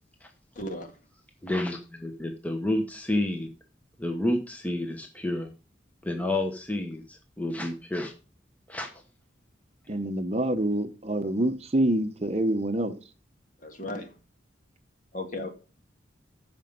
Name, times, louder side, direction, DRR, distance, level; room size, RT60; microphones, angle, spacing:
voice 1, 0.6-0.9 13.6-14.1 15.1-15.5, left 1 dB, 40° left, 1.9 m, -35 dB
voice 2, 1.4-3.5 4.0-5.5 6.0-8.1 8.7-8.9, left 1 dB, 10° left, 1.0 m, -30 dB
voice 3, 9.9-13.0, right 1 dB, 35° right, 0.8 m, -26 dB
13.5 x 5.2 x 5.2 m
head